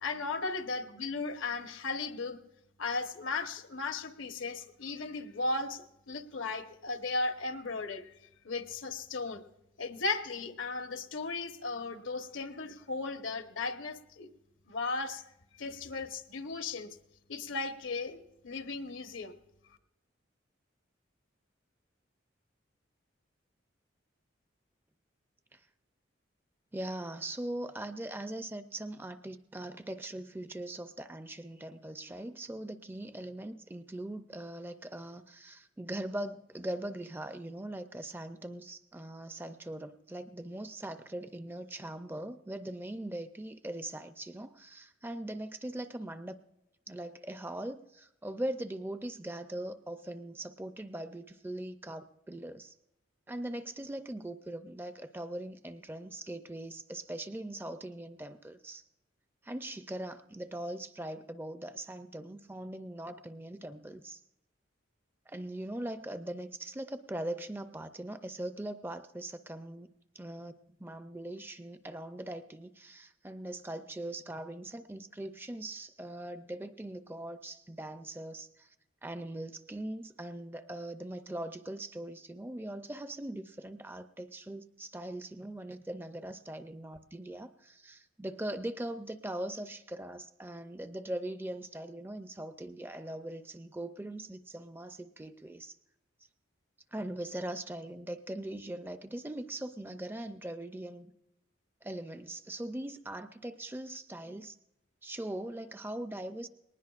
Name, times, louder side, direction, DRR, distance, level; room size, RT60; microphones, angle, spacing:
voice 1, 0.0-2.4 2.8-8.1 8.4-9.4 9.8-14.3 14.7-15.2 15.6-16.9 17.3-19.3, left 3 dB, 80° left, 7 dB, 1.0 m, -36 dB
voice 2, 26.7-46.4 46.9-52.7 53.3-58.8 59.4-64.2 65.3-70.5 70.8-78.7 79.0-95.8 96.9-101.1 101.8-104.6 105.0-106.5, right 1 dB, 10° right, 10 dB, 0.4 m, -41 dB
20.0 x 19.0 x 2.4 m, 0.89 s
head